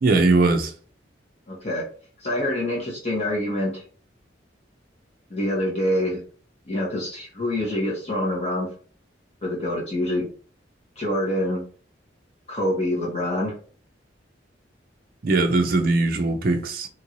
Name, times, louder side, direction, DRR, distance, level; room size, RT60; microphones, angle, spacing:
voice 1, 0.0-0.7 15.2-16.9, right 3 dB, 50° right, 0.4 m, -20 dB
voice 2, 1.5-1.8 2.2-3.8 5.3-6.2 6.7-8.7 9.4-10.3 11.0-11.6 12.5-13.5, left 1 dB, 35° left, 0.9 m, -26 dB
3.0 x 2.5 x 3.0 m
head